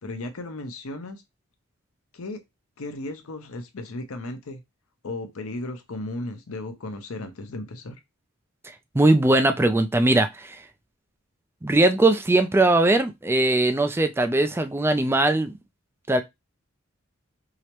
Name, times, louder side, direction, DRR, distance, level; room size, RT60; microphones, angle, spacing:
voice 1, 0.0-1.2 2.1-2.4 2.8-4.6 5.0-8.0, left 2 dB, 75° left, 0.7 m, -35 dB
voice 2, 8.9-10.6 11.6-15.5 16.1-16.2, right 2 dB, 10° right, 0.3 m, -20 dB
4.8 x 2.1 x 2.9 m
head